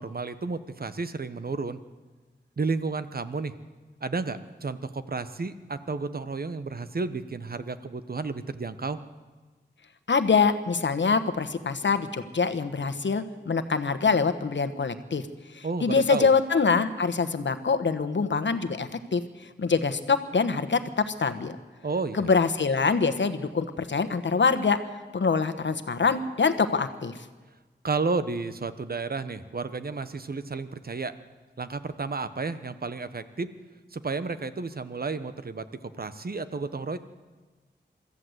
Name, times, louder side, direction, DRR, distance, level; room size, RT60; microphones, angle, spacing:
voice 1, 0.0-1.8 2.6-3.5 4.0-9.0 15.6-16.3 21.8-22.3 27.8-31.1 31.6-33.5 33.9-35.6 36.0-37.0, right 4 dB, 55° right, 12 dB, 1.1 m, -32 dB
voice 2, 10.1-15.3 15.5-19.2 19.6-21.6 22.2-24.8 25.1-27.1, left 5 dB, 80° left, 10 dB, 1.2 m, -24 dB
24.0 x 13.5 x 8.0 m, 1.3 s
wide cardioid pair, 75°, 19 cm